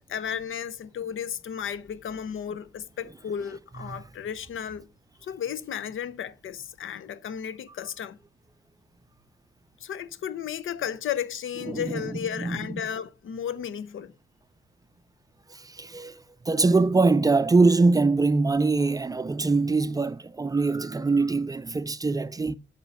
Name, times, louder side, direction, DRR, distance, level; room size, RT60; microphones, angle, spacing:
voice 1, 0.0-4.9 5.2-8.2 9.8-14.1, left 8 dB, 85° left, 0.8 m, -34 dB
voice 2, 11.7-12.6 15.5-22.5, right 3 dB, 20° right, 0.4 m, -23 dB
9.1 x 5.4 x 5.3 m
wide cardioid pair, 165°, 20 cm